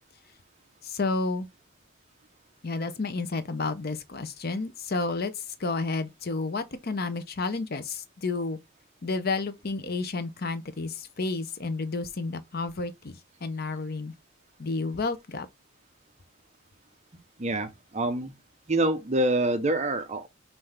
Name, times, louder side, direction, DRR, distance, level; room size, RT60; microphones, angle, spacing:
voice 1, 0.8-1.5 2.6-8.6 9.0-14.1 14.6-15.5, left 3 dB, 45° left, 0.6 m, -31 dB
voice 2, 17.4-18.3 18.7-20.3, right 1 dB, 30° right, 0.6 m, -26 dB
5.5 x 2.6 x 3.3 m
head